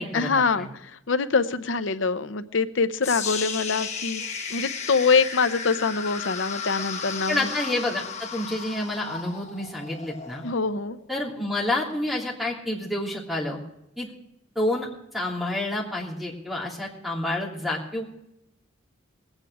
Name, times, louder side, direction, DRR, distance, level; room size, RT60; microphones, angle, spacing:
voice 1, 0.1-4.2 4.5-7.5 10.4-11.0, left 4 dB, 70° left, 11 dB, 0.7 m, -24 dB
sound 1, 3.0-11.1, left 6 dB, 35° left, 1.3 m, -34 dB
voice 2, 7.3-10.4 11.1-13.6 14.0-14.1 14.5-14.9 15.1-18.0, left 1 dB, ahead, -3 dB, 3.1 m, -29 dB
20.0 x 9.0 x 4.8 m, 0.82 s
head